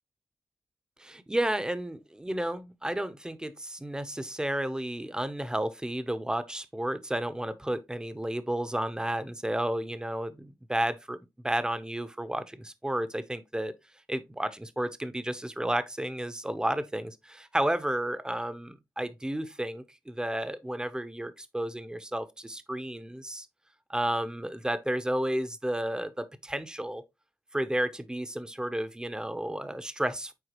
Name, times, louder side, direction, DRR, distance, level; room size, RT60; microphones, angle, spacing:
voice 1, 1.0-11.2 11.4-13.7 14.1-23.5 23.9-27.0 27.5-30.3, right 1 dB, 10° right, 0.7 m, -32 dB
7.9 x 4.7 x 3.0 m
wide cardioid pair, 115°, 8 cm